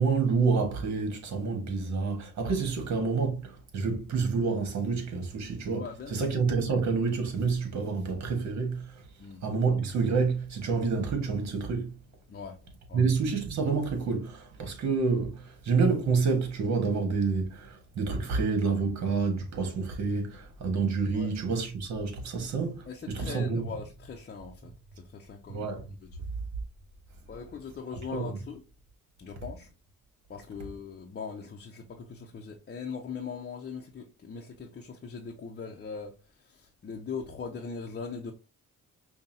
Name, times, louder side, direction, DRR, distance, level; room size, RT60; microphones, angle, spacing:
voice 1, 0.0-9.0 9.4-12.0 12.9-23.6 25.5-25.9 28.1-28.4, right 4 dB, 65° right, 1.5 m, -28 dB
voice 2, 5.7-6.1 9.2-9.4 12.3-12.6 12.9-13.0 21.1-21.4 22.9-24.7 25.0-25.7 26.0-26.1 27.3-28.6 29.2-29.7 30.3-38.3, left 5 dB, 35° left, 0.7 m, -40 dB
5.3 x 2.3 x 2.7 m
cardioid pair, 90°, 30 cm